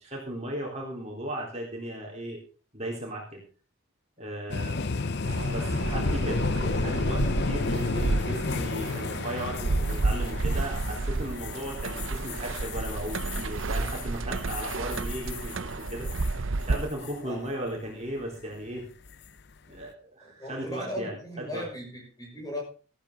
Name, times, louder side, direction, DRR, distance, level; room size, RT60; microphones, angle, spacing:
voice 1, 0.0-2.4 2.7-3.4 4.2-5.0 5.5-16.1 16.6-18.9 19.7-21.1 21.5-21.7, right 1 dB, 30° right, -1 dB, 3.8 m, -36 dB
sound 1, 4.5-16.4 16.7-17.1 19.1-19.4, left 4 dB, 50° left, 0.7 m, -32 dB
sound 2, 5.2-16.9, right 3 dB, 65° right, 0.7 m, -31 dB
voice 2, 20.2-22.6, left 1 dB, 15° left, -1 dB, 6.1 m, -38 dB
14.5 x 13.0 x 3.9 m, 0.36 s
head